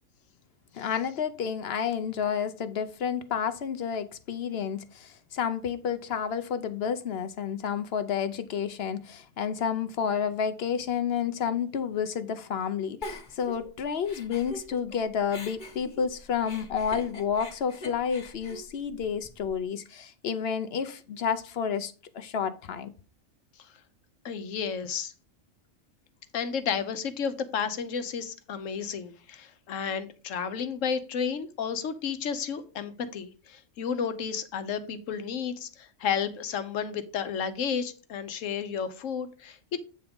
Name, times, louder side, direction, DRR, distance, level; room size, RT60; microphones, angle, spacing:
voice 1, 0.7-22.9, left 7 dB, 60° left, 0.8 m, -30 dB
Giggle, 13.0-15.0 15.3-19.5, left 2 dB, 40° left, 1.3 m, -43 dB
voice 2, 24.2-25.1 26.3-39.8, left 7 dB, 80° left, 1.2 m, -32 dB
8.7 x 3.5 x 5.2 m
omnidirectional pair, 1.3 m